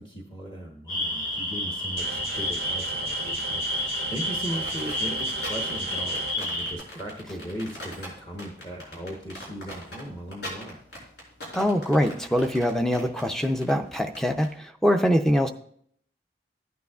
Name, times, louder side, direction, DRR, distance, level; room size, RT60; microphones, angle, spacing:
voice 1, 0.0-10.8, equal, 30° left, 0 dB, 1.0 m, -38 dB
sound 1, 0.9-6.7, left 1 dB, 50° left, 1.6 m, -30 dB
sound 2, 2.0-6.4, right 6 dB, 60° right, 0.4 m, -39 dB
sound 3, 4.5-14.5, left 1 dB, 80° left, 4.7 m, -40 dB
voice 2, 11.5-15.5, equal, 5° left, 6 dB, 0.4 m, -23 dB
14.5 x 9.3 x 2.4 m, 0.63 s
head